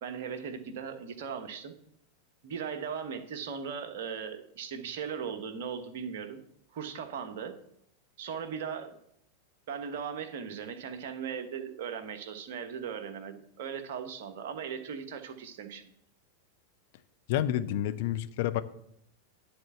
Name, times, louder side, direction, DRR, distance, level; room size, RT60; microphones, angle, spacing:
voice 1, 0.0-1.7 2.4-6.4 6.7-7.6 8.2-8.9 9.7-15.9, right 7 dB, 50° right, 7 dB, 1.2 m, -38 dB
voice 2, 17.3-18.6, left 12 dB, 50° left, 10 dB, 0.7 m, -29 dB
10.5 x 4.5 x 7.9 m, 0.70 s
figure-of-eight pair, 90°, 0 cm